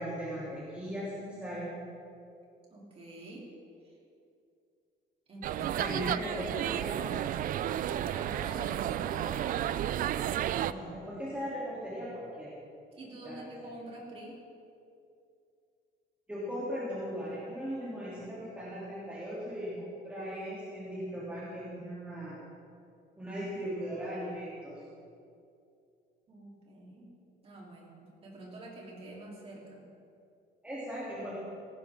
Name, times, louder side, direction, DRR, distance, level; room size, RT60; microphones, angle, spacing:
voice 1, 0.0-1.7 5.7-6.9 10.7-12.5 13.2-13.4 16.3-22.4 23.2-24.8 30.6-31.4, equal, 5° right, -9 dB, 3.1 m, -38 dB
voice 2, 2.7-3.5 3.8-3.9 5.3-5.9 7.5-9.4 12.9-14.4 26.3-27.1 27.4-29.8, right 2 dB, 30° right, -3 dB, 3.6 m, -47 dB
sound 1, 5.4-10.7, right 11 dB, 45° right, 0.4 m, -32 dB
18.0 x 16.5 x 3.8 m, 2.5 s
cardioid pair, 165°, 19 cm